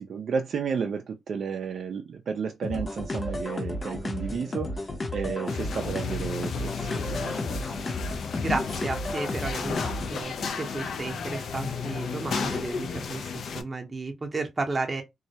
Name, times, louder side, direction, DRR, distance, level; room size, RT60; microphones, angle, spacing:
voice 1, 0.0-7.7, right 6 dB, 65° right, 0.3 m, -32 dB
sound 1, 2.6-10.2, left 1 dB, 35° left, 0.7 m, -33 dB
sound 2, 5.5-13.6, left 6 dB, 70° left, 0.4 m, -33 dB
voice 2, 8.4-15.0, right 3 dB, 30° right, 0.7 m, -33 dB
2.2 x 2.0 x 2.7 m
cardioid pair, 95°, 0 cm